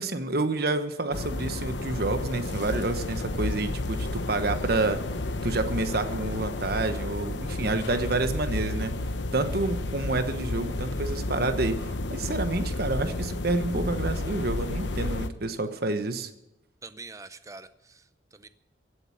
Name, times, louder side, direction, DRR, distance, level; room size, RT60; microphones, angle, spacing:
voice 1, 0.0-5.0 5.4-8.9 9.3-16.3, right 2 dB, 55° right, 8 dB, 1.2 m, -29 dB
sound 1, 1.1-15.3, left 2 dB, 75° left, 0.9 m, -31 dB
voice 2, 16.8-18.5, right 3 dB, 15° right, 12 dB, 0.7 m, -45 dB
16.0 x 7.9 x 8.6 m, 0.93 s
head